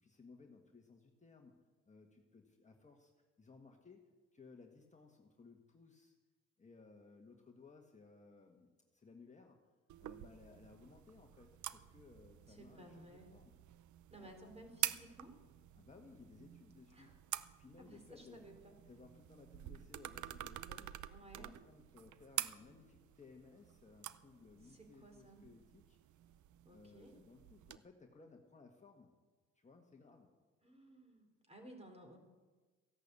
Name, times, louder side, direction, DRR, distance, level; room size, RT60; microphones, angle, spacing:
voice 1, 0.0-3.1 3.4-4.0 4.3-6.2 6.6-9.6 10.0-13.5 14.2-14.4 15.8-17.1 17.6-18.5 18.9-21.1 21.4-26.0 26.7-29.1 29.5-30.3, left 4 dB, 25° left, 2 dB, 1.6 m, -60 dB
sound 1, 9.9-27.8, right 13 dB, 75° right, 0.7 m, -48 dB
voice 2, 12.5-13.4 14.1-15.3 16.9-17.2 17.8-18.7 21.1-21.5 24.6-25.4 26.6-27.1 30.6-32.2, right 1 dB, 20° right, 4 dB, 3.9 m, -57 dB
14.5 x 11.5 x 8.3 m, 1.3 s
cardioid pair, 90°, 30 cm